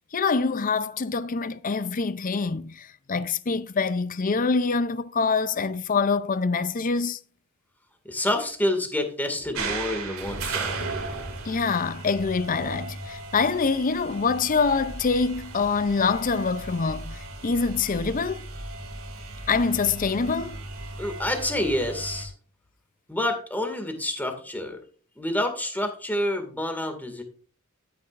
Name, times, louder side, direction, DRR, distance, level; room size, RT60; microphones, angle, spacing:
voice 1, 0.1-7.2 11.5-18.5 19.5-20.6, left 4 dB, 40° left, 0.5 m, -25 dB
voice 2, 8.0-10.8 21.0-22.3 23.1-24.8 25.2-27.2, left 1 dB, 10° left, 2.1 m, -28 dB
sound 1, 9.5-22.3, right 3 dB, 75° right, 2.6 m, -36 dB
12.5 x 9.5 x 2.6 m
head